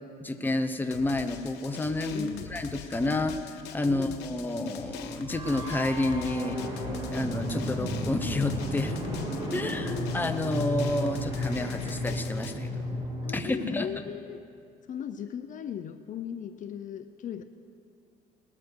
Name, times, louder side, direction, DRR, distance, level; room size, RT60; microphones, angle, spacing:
voice 1, 0.2-9.0 9.5-12.7 13.3-13.9, left 2 dB, 10° left, 7 dB, 0.8 m, -30 dB
Drum, 0.9-12.5, left 7 dB, 90° left, 0.9 m, -43 dB
voice 2, 2.1-2.5 3.8-4.3 9.6-10.1 13.2-14.4 14.9-17.4, left 9 dB, 50° left, 10 dB, 0.6 m, -38 dB
sound 1, 4.5-13.4, equal, 20° right, 3.2 m, -33 dB
19.5 x 7.3 x 6.3 m, 2.4 s
cardioid pair, 110°, 17 cm